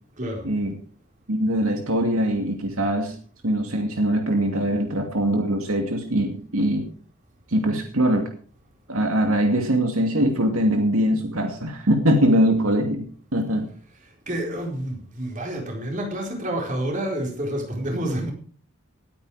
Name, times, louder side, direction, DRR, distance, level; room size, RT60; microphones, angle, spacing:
voice 1, 0.2-0.5 14.0-18.3, right 1 dB, 35° right, 4.4 m, -29 dB
voice 2, 1.3-3.2 3.4-6.9 7.5-8.3 8.9-13.1 13.3-13.7, equal, 75° right, 2.5 m, -22 dB
19.0 x 9.5 x 5.0 m
head